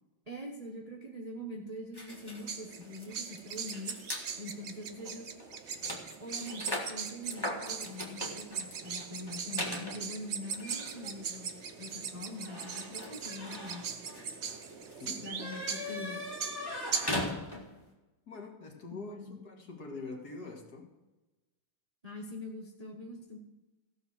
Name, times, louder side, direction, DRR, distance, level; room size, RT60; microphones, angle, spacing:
voice 1, 0.3-4.0 4.4-5.3 6.2-13.8 15.2-16.2 18.9-19.4 22.0-23.4, left 1 dB, 25° right, 0 dB, 0.9 m, -44 dB
sound 1, 1.9-4.3 5.0-5.1 5.4-17.9, left 1 dB, 10° left, 1.4 m, -41 dB
sound 2, 2.1-17.2, right 6 dB, 70° right, 0.6 m, -40 dB
voice 2, 17.2-17.5 18.3-20.9, left 3 dB, 50° left, 1 dB, 2.1 m, -44 dB
15.5 x 5.7 x 6.1 m, 1.1 s
omnidirectional pair, 2.3 m